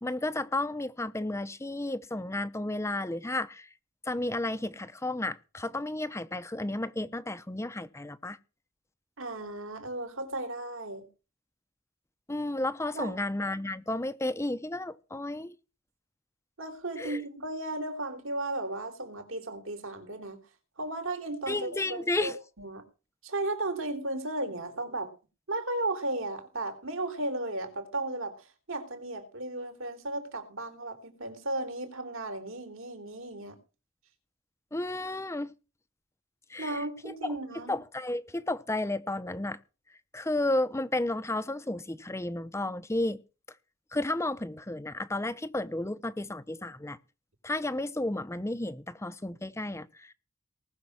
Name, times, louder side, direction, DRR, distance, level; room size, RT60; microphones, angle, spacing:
voice 1, 0.0-3.7 4.1-8.4 12.3-15.5 17.0-17.2 21.5-22.4 34.7-35.5 36.5-36.8 37.7-39.6 40.1-43.2 43.9-47.0 47.4-50.1, left 2 dB, 15° left, 0.7 m, -32 dB
voice 2, 9.2-11.1 12.9-13.2 16.6-20.4 20.8-22.8 23.2-25.1 25.5-33.6 36.6-37.7, right 2 dB, 75° right, 3.7 m, -35 dB
19.0 x 6.7 x 7.5 m
head